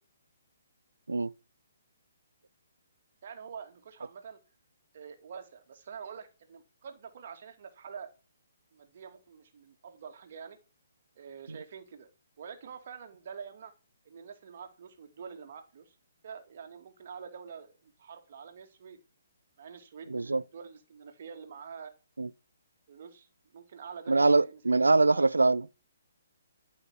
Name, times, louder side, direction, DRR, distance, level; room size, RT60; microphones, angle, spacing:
voice 1, 3.2-4.4 4.9-8.1 8.7-10.6 11.2-12.1 12.4-13.7 14.0-16.0 16.2-19.0 19.6-21.9 22.9-24.6 25.0-25.2, right 6 dB, 45° right, 2.4 m, -46 dB
voice 2, 20.1-20.4 22.2-22.3 24.1-25.6, right 3 dB, 70° right, 0.6 m, -23 dB
13.0 x 5.9 x 7.6 m
figure-of-eight pair, 130°, 0 cm